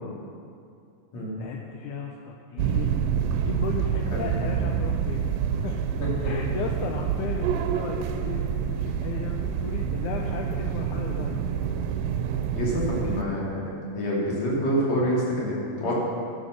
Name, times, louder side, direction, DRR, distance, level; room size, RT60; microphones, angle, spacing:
voice 1, 1.4-3.0 3.5-5.2 5.5-5.8 6.2-11.6 13.0-13.2, left 6 dB, 80° left, 2 dB, 1.8 m, -35 dB
sound 1, 2.6-13.2, right 8 dB, 80° right, 2.3 m, -27 dB
voice 2, 6.0-6.3 12.6-13.6 13.9-15.9, equal, 50° left, -5 dB, 3.7 m, -27 dB
11.0 x 9.6 x 6.4 m, 2.4 s
omnidirectional pair, 4.3 m